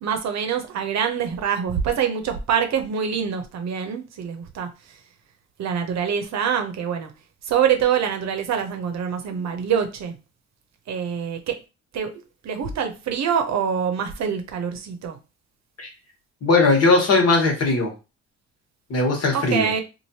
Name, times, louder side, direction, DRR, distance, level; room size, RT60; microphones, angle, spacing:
voice 1, 0.0-5.0 5.6-7.1 7.4-10.2 10.9-11.6 11.9-12.1 12.4-15.2 19.3-19.8, right 7 dB, 60° right, 0.7 m, -25 dB
voice 2, 16.4-17.9 18.9-19.7, left 3 dB, 55° left, 1.3 m, -19 dB
3.1 x 2.5 x 2.8 m
cardioid pair, 90°, 30 cm